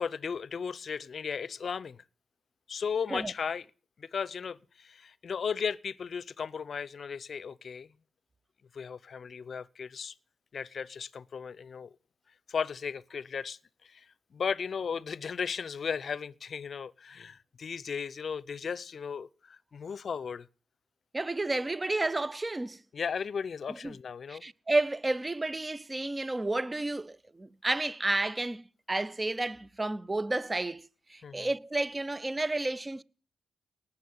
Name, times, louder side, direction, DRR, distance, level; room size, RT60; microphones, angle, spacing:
voice 1, 0.0-2.0 2.7-3.7 4.0-7.9 8.7-10.1 10.5-11.9 12.5-14.1 14.3-20.5 22.9-24.4 31.2-31.5, left 6 dB, 50° left, 0.7 m, -36 dB
voice 2, 21.1-22.8 23.7-24.0 24.3-33.0, right 2 dB, 20° right, 0.7 m, -31 dB
19.0 x 7.2 x 9.7 m
cardioid pair, 75°, 0 cm